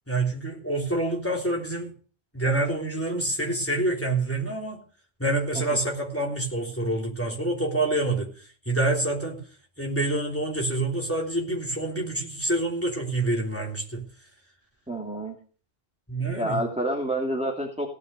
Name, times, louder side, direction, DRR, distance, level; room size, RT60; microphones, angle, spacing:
voice 1, 0.1-1.9 2.3-4.8 5.2-9.4 9.8-14.0 16.1-16.6, right 2 dB, 10° left, -1 dB, 3.3 m, -27 dB
voice 2, 14.9-15.3 16.3-17.9, right 1 dB, 5° right, 0 dB, 2.6 m, -28 dB
17.0 x 6.6 x 8.1 m, 0.41 s
omnidirectional pair, 1.1 m